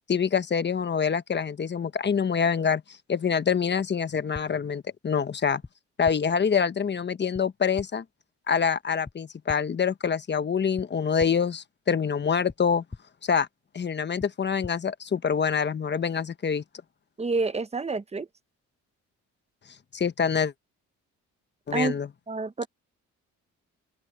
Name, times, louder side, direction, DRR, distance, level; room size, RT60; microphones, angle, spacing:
voice 1, 0.1-2.8 3.1-5.6 6.0-8.0 8.5-12.8 13.2-13.5 13.7-16.6 19.9-20.5 21.7-22.1, left 6 dB, 35° left, 1.1 m, -26 dB
sound 1, 4.3-4.5 5.6-5.7 6.1-6.2 7.3-7.4 7.8-7.9 9.1-9.2 9.5-9.6 10.8-10.9 11.2-11.3 12.5-12.6 12.9-13.0 14.2-14.3 14.6-14.7, left 3 dB, 15° left, 0.8 m, -40 dB
voice 2, 17.2-18.3 21.7-22.0 22.3-22.7, right 3 dB, 20° right, 1.0 m, -28 dB
open air
cardioid pair, 90°, 30 cm